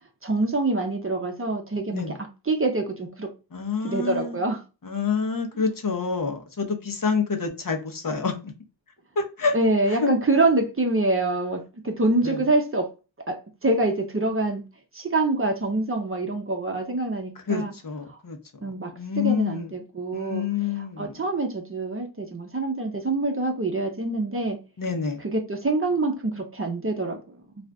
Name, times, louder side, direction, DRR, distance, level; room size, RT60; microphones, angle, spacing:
voice 1, 0.2-2.0 2.5-3.3 3.8-4.6 9.5-12.9 13.3-14.6 14.9-17.7 18.1-18.2 18.6-20.4 21.0-24.6 25.2-27.7, right 2 dB, 30° right, 0.7 m, -25 dB
voice 2, 3.5-4.4 4.8-8.5 9.2-9.6 9.9-10.1 12.2-12.4 17.5-18.4 19.0-19.7 20.1-21.2 24.8-25.2, left 5 dB, 45° left, 0.8 m, -27 dB
2.5 x 2.4 x 3.3 m
wide cardioid pair, 80°, 47 cm